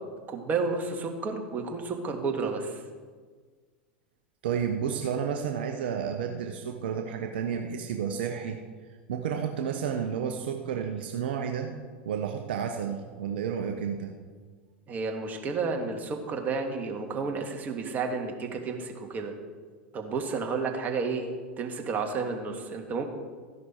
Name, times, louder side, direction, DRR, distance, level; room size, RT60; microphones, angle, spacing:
voice 1, 0.3-2.8 14.9-19.3 19.9-21.3 21.6-23.1, right 4 dB, 30° right, 3 dB, 2.0 m, -31 dB
voice 2, 4.4-8.6 9.1-11.7 12.0-14.1, right 7 dB, 65° right, 5 dB, 0.9 m, -31 dB
14.0 x 10.5 x 4.5 m, 1.5 s
hypercardioid pair, 90°, 6 cm